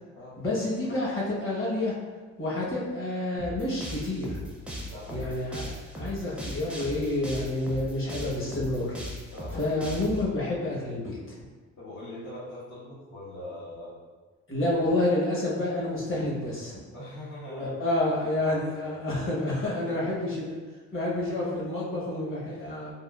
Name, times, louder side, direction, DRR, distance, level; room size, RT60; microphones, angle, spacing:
voice 1, 0.4-2.0 2.4-4.5 5.1-5.7 6.0-8.9 9.5-11.5 14.5-16.8 17.5-20.6 20.9-22.9, left 1 dB, 45° left, -6 dB, 1.2 m, -29 dB
sound 1, 3.4-10.2, equal, 5° right, 0.5 m, -38 dB
voice 2, 4.8-5.4 9.2-9.8 11.7-14.0 16.9-18.9 19.7-20.4, left 1 dB, 75° left, -12 dB, 1.2 m, -42 dB
3.6 x 2.4 x 2.3 m, 1.4 s
cardioid pair, 90°, 30 cm